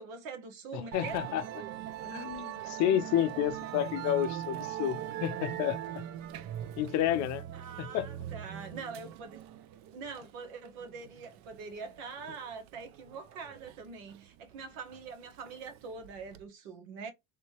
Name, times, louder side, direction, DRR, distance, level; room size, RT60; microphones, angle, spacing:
voice 1, 0.0-1.4 7.5-9.4 9.9-17.1, right 5 dB, 70° right, 1.4 m, -44 dB
voice 2, 0.7-1.4 2.0-6.0 6.8-7.4 7.8-8.1, left 11 dB, 45° left, 0.5 m, -30 dB
Musical instrument, 0.9-16.4, right 11 dB, 45° right, 0.4 m, -42 dB
3.4 x 2.7 x 2.8 m
supercardioid pair, 120°, 41 cm